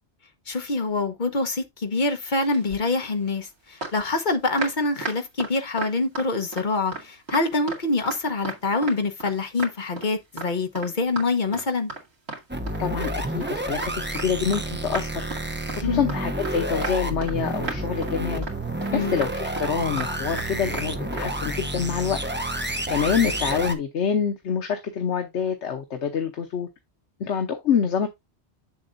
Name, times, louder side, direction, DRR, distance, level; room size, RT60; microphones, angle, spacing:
voice 1, 0.5-11.9 15.8-16.1 18.9-19.2, left 3 dB, 45° left, 1.3 m, -25 dB
sound 1, 2.5-3.1 3.8-6.7 6.9-8.2 8.4-9.3 9.6-10.1 10.4-10.5 10.8-10.9 11.2-11.3 11.5-12.4 12.7-14.6 14.9-15.4 15.7-15.8 16.1-16.6 16.8-17.4 17.6-18.1 18.4-18.6 18.8-20.5 20.7-20.9 21.1-21.3, right 3 dB, 70° right, 2.4 m, -34 dB
sound 2, 12.5-23.7, right 1 dB, 10° right, 0.7 m, -30 dB
voice 2, 12.8-15.3 15.8-18.5 18.9-22.2 22.9-26.7 27.2-28.1, left 7 dB, 85° left, 1.2 m, -26 dB
7.8 x 7.0 x 2.6 m
omnidirectional pair, 1.1 m